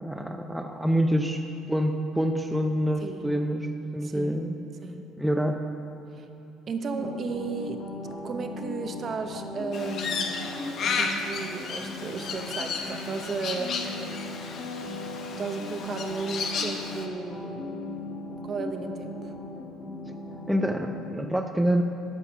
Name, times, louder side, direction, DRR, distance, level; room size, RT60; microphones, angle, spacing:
voice 1, 0.0-1.4 1.7-4.6 5.2-5.7 20.5-21.8, equal, 5° right, 4 dB, 0.5 m, -26 dB
voice 2, 3.0-3.4 4.1-4.3 4.8-5.0 6.2-6.3 6.7-7.8 8.2-10.5 10.8-13.8 15.4-17.7 18.4-19.3, right 4 dB, 40° right, 6 dB, 0.8 m, -34 dB
sound 1, 7.0-21.1, left 2 dB, 35° left, 1.5 m, -38 dB
Crow, 9.7-17.1, left 5 dB, 55° left, 0.9 m, -33 dB
13.0 x 5.6 x 5.9 m, 2.9 s
cardioid pair, 110°, 0 cm